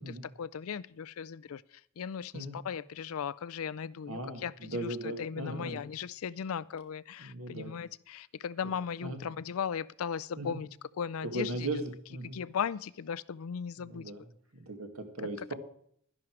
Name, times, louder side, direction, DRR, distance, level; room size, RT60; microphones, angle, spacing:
voice 1, 0.0-10.7 11.0-11.7 12.3-14.1 15.4-15.5, left 7 dB, 80° left, 0.4 m, -37 dB
voice 2, 4.1-5.8 7.2-7.7 9.0-9.2 10.4-10.6 11.3-12.4 13.9-14.2 14.5-15.5, right 1 dB, 80° right, 2.0 m, -38 dB
12.0 x 11.0 x 4.6 m
head